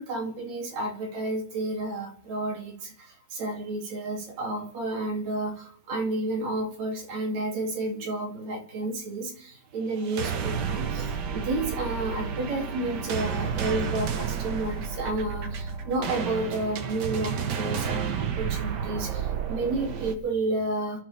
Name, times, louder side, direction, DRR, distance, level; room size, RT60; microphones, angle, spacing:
voice 1, 0.0-21.0, right 2 dB, 65° right, 0 dB, 3.8 m, -31 dB
sound 1, 10.0-20.1, right 6 dB, 90° right, 0.9 m, -31 dB
29.5 x 12.0 x 3.4 m, 0.63 s
omnidirectional pair, 3.4 m